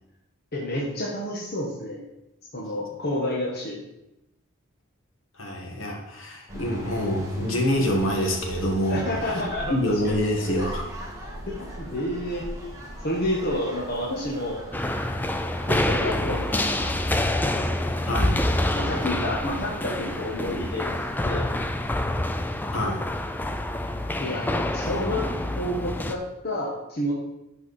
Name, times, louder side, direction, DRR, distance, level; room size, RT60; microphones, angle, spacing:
voice 1, 0.5-2.1 2.5-3.8 8.9-10.1 11.5-12.5 13.0-14.6 15.7-16.9 18.7-20.9 21.2-21.5 24.2-25.2 25.6-27.1, left 1 dB, 50° left, -4 dB, 1.4 m, -29 dB
voice 2, 5.3-9.4 9.7-11.0 18.1-18.4 22.7-23.0, equal, 65° left, 1 dB, 1.8 m, -26 dB
sound 1, 6.5-21.2, equal, 15° right, 1.7 m, -39 dB
sound 2, 14.7-26.2, left 1 dB, 10° left, 0.4 m, -27 dB
11.0 x 4.8 x 4.3 m, 0.89 s
head